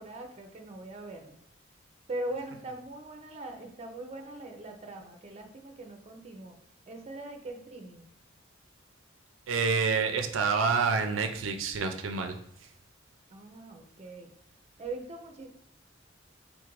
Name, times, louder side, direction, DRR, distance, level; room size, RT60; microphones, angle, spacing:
voice 1, 0.0-1.4 2.1-6.6 6.9-8.1 13.3-14.3 14.8-15.5, right 2 dB, 35° right, 4 dB, 0.6 m, -41 dB
voice 2, 9.5-12.4, right 5 dB, 85° right, 6 dB, 0.4 m, -28 dB
3.8 x 2.5 x 4.6 m, 0.72 s
head